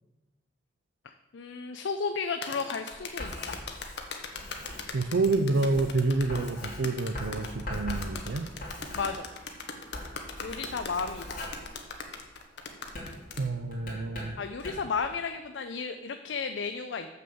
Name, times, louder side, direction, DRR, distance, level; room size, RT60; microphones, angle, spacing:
voice 1, 1.0-3.6 8.9-9.3 10.4-11.4 14.4-17.1, left 5 dB, 80° left, 8 dB, 0.5 m, -33 dB
sound 1, 2.4-13.5, left 4 dB, 65° left, 1.1 m, -40 dB
Writing, 2.9-9.6 9.8-12.4 12.8-15.0, left 1 dB, 50° left, 2.9 m, -41 dB
voice 2, 4.9-8.5 13.4-14.4, right 3 dB, 80° right, 9 dB, 0.5 m, -28 dB
7.0 x 6.6 x 6.9 m, 1.2 s
head